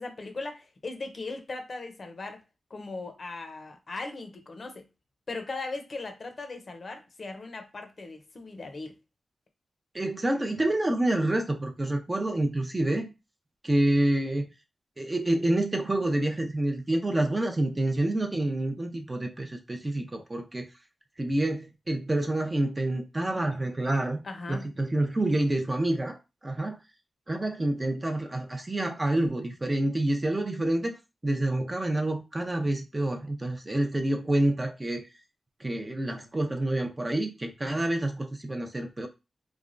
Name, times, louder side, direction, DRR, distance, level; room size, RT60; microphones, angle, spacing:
voice 1, 0.0-2.4 2.7-4.8 5.3-8.9 24.2-24.7, left 3 dB, 55° left, 0.7 m, -38 dB
voice 2, 9.9-13.1 13.6-14.5 15.0-20.6 21.2-24.2 24.5-26.2 26.4-26.8 27.3-31.0 31.2-35.0 35.6-39.1, right 1 dB, 25° right, 0.5 m, -28 dB
3.2 x 2.1 x 2.5 m
cardioid pair, 75°, 0 cm